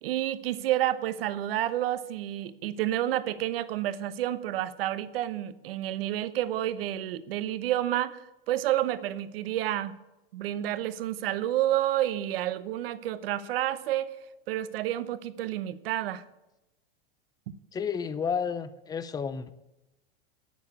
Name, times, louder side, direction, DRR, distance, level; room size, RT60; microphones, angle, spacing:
voice 1, 0.0-9.9 10.3-14.2 14.5-16.2, right 13 dB, 70° right, 14 dB, 0.9 m, -29 dB
voice 2, 17.7-19.5, left 6 dB, 15° left, 13 dB, 0.5 m, -31 dB
8.9 x 7.1 x 8.5 m, 0.96 s
supercardioid pair, 125°, 29 cm